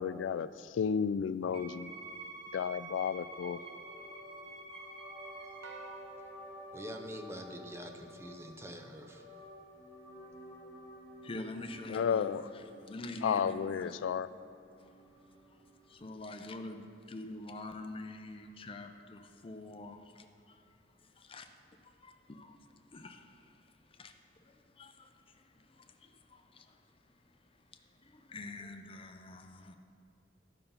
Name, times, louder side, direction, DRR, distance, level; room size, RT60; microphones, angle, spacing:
voice 1, 0.0-1.9 2.5-3.6 11.9-12.5 13.2-14.3, left 7 dB, 90° left, 15 dB, 0.3 m, -32 dB
Wind instrument woodwind instrument, 1.5-5.8, right 2 dB, 30° right, 1.6 m, -48 dB
sound 1, 2.9-16.0, equal, 15° left, 1.8 m, -53 dB
sound 2, 5.6-8.2, right 3 dB, 75° right, 0.8 m, -54 dB
voice 2, 6.7-9.2, equal, 15° right, 4 dB, 0.6 m, -45 dB
voice 3, 11.2-13.9 14.8-14.9 15.9-20.7 21.0-24.1 24.4-27.4 27.7-29.7, left 2 dB, 30° left, 5 dB, 0.6 m, -47 dB
12.0 x 5.5 x 5.5 m, 2.4 s
head